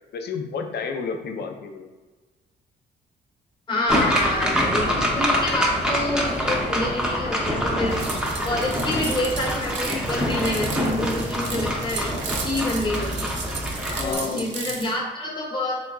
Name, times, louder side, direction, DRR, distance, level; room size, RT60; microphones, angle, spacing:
voice 1, 0.1-1.9 13.9-14.5, left 5 dB, 55° left, 5 dB, 0.5 m, -31 dB
voice 2, 3.7-8.0 8.4-13.3 14.0-15.8, left 1 dB, 25° left, -2 dB, 1.1 m, -27 dB
sound 1, 3.9-14.1, equal, 5° right, 0.7 m, -25 dB
sound 2, 7.9-14.9, right 5 dB, 70° right, 0.6 m, -35 dB
4.0 x 3.5 x 2.3 m, 1.3 s
cardioid pair, 90°, 20 cm